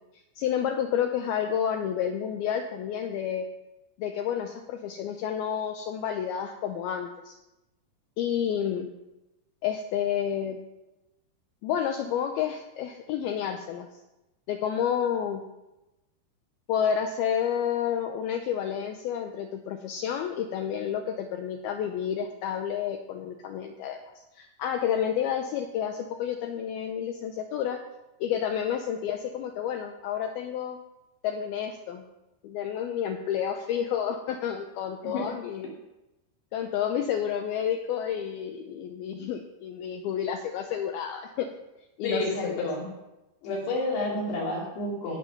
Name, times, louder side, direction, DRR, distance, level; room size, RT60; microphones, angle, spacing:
voice 1, 0.4-3.5 4.0-7.3 8.2-8.9 9.6-10.6 11.6-13.9 14.5-15.4 16.7-24.0 24.4-27.8 28.2-30.8 31.2-32.0 32.4-35.7 36.5-41.5 42.0-42.7, left 9 dB, 85° left, 5 dB, 2.2 m, -30 dB
voice 2, 42.0-42.9 43.4-45.2, left 2 dB, 65° left, -3 dB, 4.4 m, -30 dB
17.5 x 6.2 x 5.8 m, 0.98 s
omnidirectional pair, 5.2 m